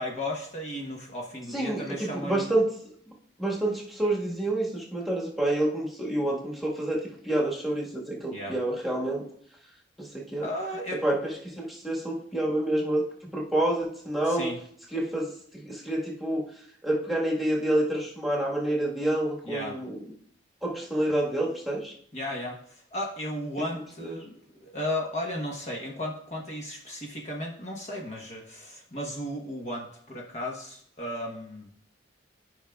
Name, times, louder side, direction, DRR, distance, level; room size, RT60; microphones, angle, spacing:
voice 1, 0.0-2.5 8.3-8.6 10.4-11.0 14.3-14.6 19.4-19.8 22.1-24.3 24.6-31.7, left 1 dB, 40° left, -1 dB, 1.1 m, -35 dB
voice 2, 1.5-2.7 3.4-9.2 10.0-10.5 11.0-13.0 13.3-14.5 14.9-16.4 16.8-20.0 20.6-21.9 24.0-24.1, right 1 dB, ahead, -4 dB, 1.4 m, -28 dB
13.5 x 5.1 x 2.3 m, 0.64 s
head